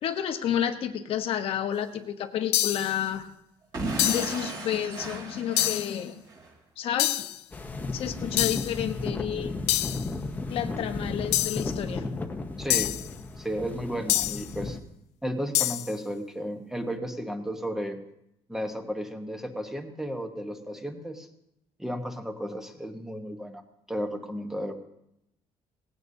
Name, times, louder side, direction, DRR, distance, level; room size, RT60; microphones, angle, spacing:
voice 1, 0.0-3.3 4.1-6.2 6.8-7.3 7.9-9.5 10.5-12.1, left 9 dB, 60° left, 8 dB, 1.0 m, -30 dB
sound 1, 2.5-3.0 4.0-4.4 5.6-5.9 7.0-7.4 8.4-8.8 9.7-10.1 11.3-11.7 12.7-13.1 14.1-14.5 15.5-15.9, left 15 dB, 80° left, 0.4 m, -26 dB
Explosion / Shatter, 3.7-6.5, right 2 dB, 35° right, 3.0 m, -35 dB
sound 2, 7.5-14.8, left 3 dB, 15° left, 0.9 m, -34 dB
voice 2, 12.6-12.9 13.4-14.8 15.2-18.0 18.5-21.3 21.8-23.6 23.9-24.7, equal, 5° right, 5 dB, 1.1 m, -33 dB
18.5 x 16.0 x 2.7 m, 0.81 s
cardioid pair, 160°, 11 cm